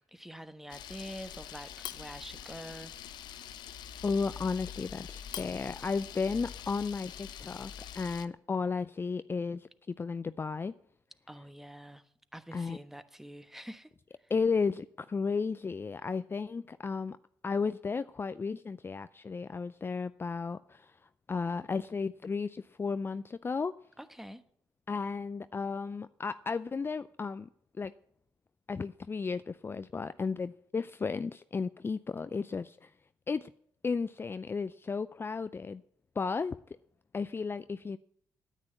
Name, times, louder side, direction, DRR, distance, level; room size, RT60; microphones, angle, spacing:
voice 1, 0.1-2.9 11.3-13.9 24.0-24.4, equal, 5° right, 1.2 m, -46 dB
Camera, 0.7-8.2, left 9 dB, 70° left, 0.7 m, -44 dB
voice 2, 4.0-10.7 12.5-12.8 14.3-17.2 17.4-21.0 21.3-23.7 24.9-27.5 27.8-27.9 28.7-32.9 33.3-33.5 33.8-35.8 36.2-36.6 37.1-38.0, left 5 dB, 30° left, 0.4 m, -34 dB
9.6 x 9.2 x 8.7 m
supercardioid pair, 55°, 8 cm